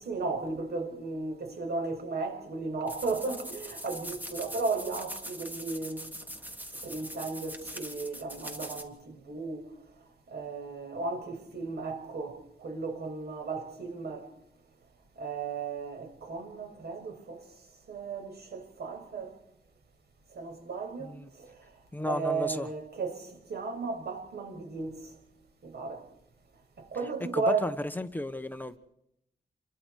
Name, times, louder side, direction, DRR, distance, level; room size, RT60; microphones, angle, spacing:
voice 1, 0.0-6.1 6.8-9.7 10.3-14.3 15.2-17.4 17.9-19.3 20.4-21.5 22.0-25.0 25.6-26.0 26.8-27.7, right 4 dB, 90° right, 6.1 m, -35 dB
sound 1, 2.9-8.8, equal, 10° right, 3.3 m, -42 dB
voice 2, 21.0-21.3 21.9-22.7 27.2-28.8, left 1 dB, 10° left, 1.2 m, -34 dB
29.0 x 23.5 x 4.7 m
wide cardioid pair, 130°, 16 cm